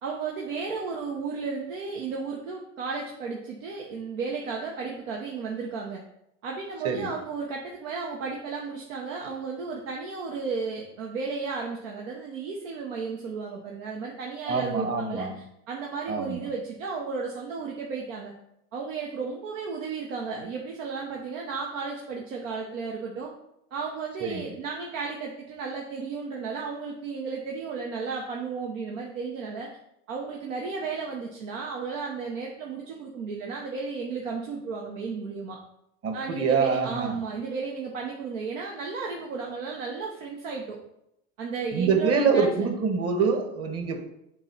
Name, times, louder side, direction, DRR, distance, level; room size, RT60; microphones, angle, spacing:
voice 1, 0.0-6.0 6.4-18.3 18.7-23.3 23.7-29.7 30.1-35.6 36.1-40.8 41.4-42.7, right 4 dB, 80° right, -1 dB, 1.2 m, -34 dB
voice 2, 14.5-15.3 16.1-16.4 24.2-24.4 36.0-37.2 41.7-44.0, right 5 dB, 40° right, 5 dB, 1.5 m, -25 dB
7.8 x 3.0 x 5.6 m, 0.79 s
hypercardioid pair, 95°, 38 cm